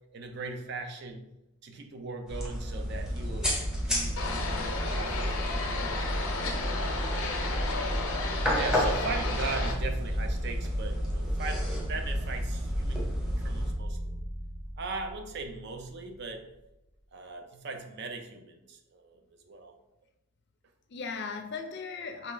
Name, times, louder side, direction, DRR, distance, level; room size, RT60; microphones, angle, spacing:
voice 1, 0.1-1.2 1.6-3.5 3.8-5.4 5.8-6.3 8.5-13.1 13.4-14.1 14.8-16.5 17.1-19.2 19.4-19.7, right 3 dB, 50° right, 5 dB, 0.5 m, -39 dB
sound 1, 2.3-13.7, equal, 5° right, 0.6 m, -33 dB
sound 2, 2.8-16.2, right 1 dB, 85° right, 0.8 m, -36 dB
sound 3, 4.2-9.7, left 3 dB, 85° left, 0.7 m, -33 dB
voice 2, 20.9-22.3, left 5 dB, 50° left, 5 dB, 0.5 m, -41 dB
3.6 x 3.1 x 3.8 m, 0.93 s
head